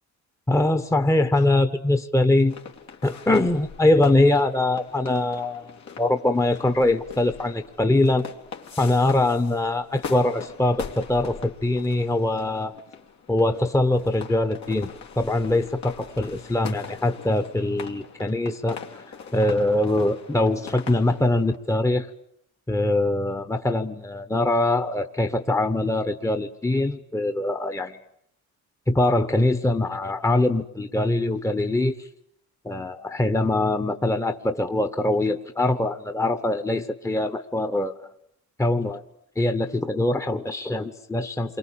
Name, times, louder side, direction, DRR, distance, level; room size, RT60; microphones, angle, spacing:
voice 1, 0.5-2.5 3.0-8.2 8.8-12.7 13.3-14.9 15.2-19.0 19.3-22.1 22.7-28.0 28.9-32.1 32.6-38.0 38.6-39.0 39.4-41.6, left 2 dB, 10° left, 8 dB, 1.3 m, -23 dB
sound 1, 2.5-21.6, left 6 dB, 65° left, 3.1 m, -42 dB
28.5 x 23.0 x 8.7 m, 0.74 s
cardioid pair, 90°, 30 cm